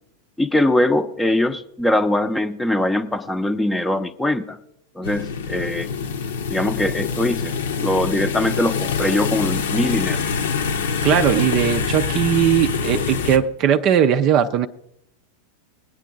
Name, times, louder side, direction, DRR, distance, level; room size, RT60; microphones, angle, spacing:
voice 1, 0.4-4.6 5.0-5.9 6.5-10.2, left 1 dB, 5° left, 9 dB, 0.7 m, -22 dB
sound 1, 5.0-13.4, left 6 dB, 60° left, 0.8 m, -25 dB
voice 2, 11.0-14.7, right 9 dB, 40° right, 10 dB, 0.5 m, -18 dB
20.5 x 9.0 x 3.8 m, 0.78 s
figure-of-eight pair, 90°, 0 cm